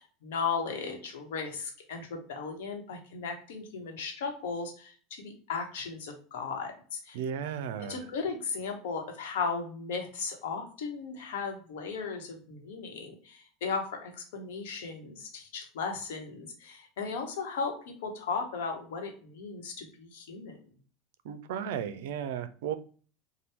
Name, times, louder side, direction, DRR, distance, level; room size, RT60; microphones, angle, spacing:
voice 1, 0.0-7.2 7.8-20.6, left 5 dB, 80° left, 3 dB, 1.0 m, -36 dB
voice 2, 7.1-8.0 21.2-22.8, right 8 dB, 75° right, 12 dB, 0.4 m, -34 dB
2.7 x 2.2 x 3.4 m, 0.42 s
hypercardioid pair, 90°, 0 cm